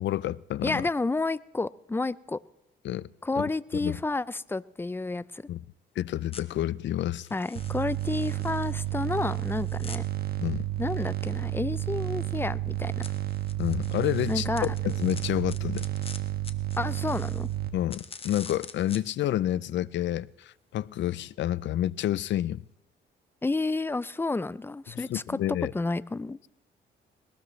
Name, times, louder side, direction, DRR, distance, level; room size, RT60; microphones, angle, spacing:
voice 1, 0.0-0.9 2.8-3.1 3.4-3.5 3.8-4.0 5.5-5.6 6.0-7.3 10.4-10.6 13.6-14.5 14.8-15.9 17.7-22.6 25.1-25.7, left 12 dB, 65° left, 0.5 m, -29 dB
voice 2, 0.6-2.4 3.2-5.4 7.3-10.1 10.8-12.9 14.3-14.7 16.8-17.5 23.4-25.4 25.7-26.4, left 3 dB, 10° left, 0.5 m, -30 dB
sound 1, 6.3-6.4 7.2-10.0 13.0-17.6 17.9-19.0, left 4 dB, 30° left, 1.1 m, -46 dB
sound 2, 7.6-17.7, right 13 dB, 50° right, 1.4 m, -31 dB
21.0 x 19.0 x 3.2 m
cardioid pair, 90°, 20 cm